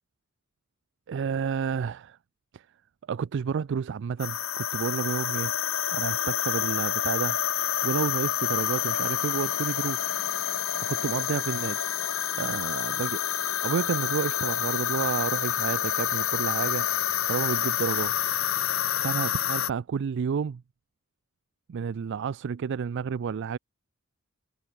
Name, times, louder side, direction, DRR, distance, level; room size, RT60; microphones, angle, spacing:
voice 1, 1.1-2.2 2.5-2.7 3.1-5.5 5.9-7.4 7.8-10.1 10.9-11.8 12.4-13.2 13.6-16.9 17.3-18.1 18.5-18.6 19.0-20.6 21.7-23.6, right 6 dB, 60° right, 0.4 m, -30 dB
sound 1, 4.2-19.7, left 10 dB, 75° left, 1.3 m, -28 dB
head